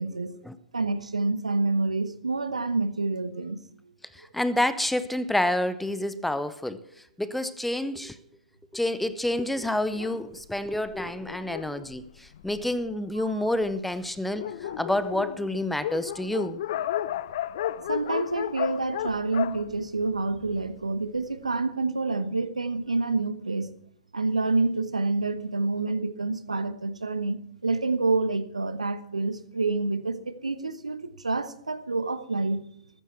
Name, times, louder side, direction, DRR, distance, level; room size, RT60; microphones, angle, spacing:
voice 1, 0.0-0.4 0.7-3.6 13.2-13.4 14.4-14.8 17.9-23.7 24.1-32.6, right 3 dB, 80° right, 13 dB, 1.1 m, -28 dB
voice 2, 4.1-6.8 7.2-8.2 8.7-16.6, left 1 dB, 5° left, 14 dB, 0.7 m, -28 dB
Dog, 9.9-12.9 13.6-13.7 14.0-14.1 14.3-20.7, left 12 dB, 50° left, 0.6 m, -34 dB
15.0 x 12.5 x 4.6 m, 0.70 s
figure-of-eight pair, 110°, 4 cm